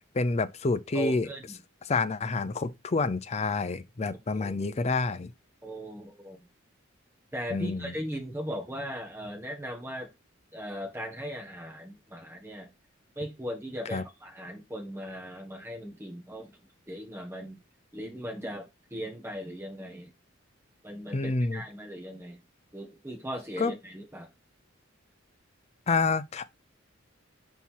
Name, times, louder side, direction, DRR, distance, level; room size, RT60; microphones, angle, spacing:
voice 1, 0.1-1.3 1.8-5.3 7.5-7.9 13.9-14.0 21.1-21.6 23.6-23.7 25.9-26.5, left 3 dB, 35° left, 0.5 m, -28 dB
voice 2, 0.9-1.6 4.1-4.5 5.6-6.4 7.3-10.1 10.5-12.7 13.2-16.5 16.9-17.6 17.9-20.1 20.8-22.4 22.7-24.3, equal, 10° right, 1.7 m, -38 dB
5.6 x 4.2 x 4.6 m
head